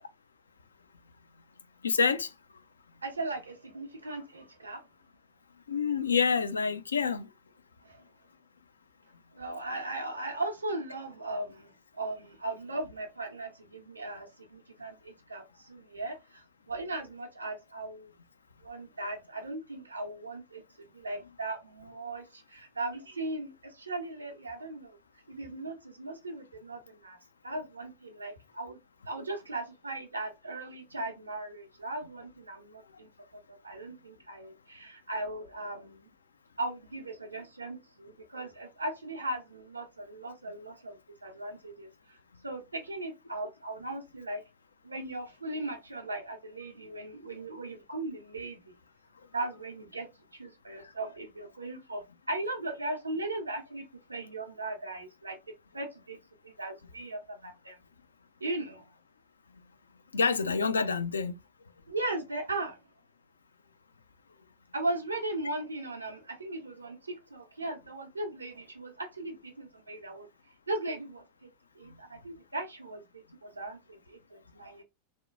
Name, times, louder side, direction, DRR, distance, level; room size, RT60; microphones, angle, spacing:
voice 1, 1.8-2.3 5.7-7.3 60.1-61.3, left 5 dB, 75° left, 0.3 m, -27 dB
voice 2, 3.0-4.8 7.8-8.0 9.3-18.1 18.6-25.0 25.3-27.2 27.4-28.8 29.1-36.1 36.6-42.2 42.4-44.4 44.8-48.7 49.3-55.4 55.7-56.2 56.4-57.8 58.4-58.8 61.9-62.8 64.7-70.3 70.7-71.5 71.8-74.8, right 2 dB, 80° right, 0.5 m, -38 dB
2.8 x 2.1 x 2.3 m
figure-of-eight pair, 90°, 0 cm